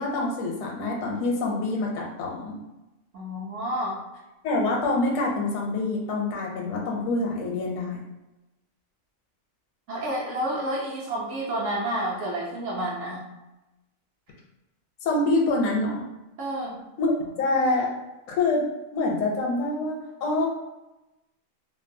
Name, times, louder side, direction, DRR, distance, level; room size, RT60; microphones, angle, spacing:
voice 1, 0.0-2.6 4.4-8.0 15.0-16.1 17.0-17.9 18.3-18.6 18.9-20.5, left 2 dB, 75° left, -1 dB, 1.0 m, -26 dB
voice 2, 3.1-4.0 9.9-13.2 16.4-16.8, right 1 dB, 65° right, -5 dB, 0.9 m, -30 dB
2.6 x 2.2 x 2.5 m, 0.99 s
omnidirectional pair, 1.4 m